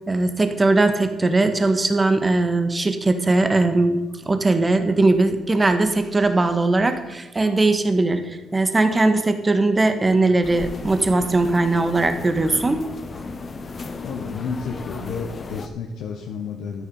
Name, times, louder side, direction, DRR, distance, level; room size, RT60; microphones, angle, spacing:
voice 1, 0.1-12.8, right 2 dB, 25° right, 8 dB, 1.6 m, -20 dB
sound 1, 10.4-15.7, left 3 dB, 40° left, 1.3 m, -35 dB
voice 2, 14.0-16.9, left 5 dB, 85° left, 1 dB, 1.3 m, -31 dB
13.0 x 10.0 x 5.6 m, 1.1 s
cardioid pair, 90°, 0 cm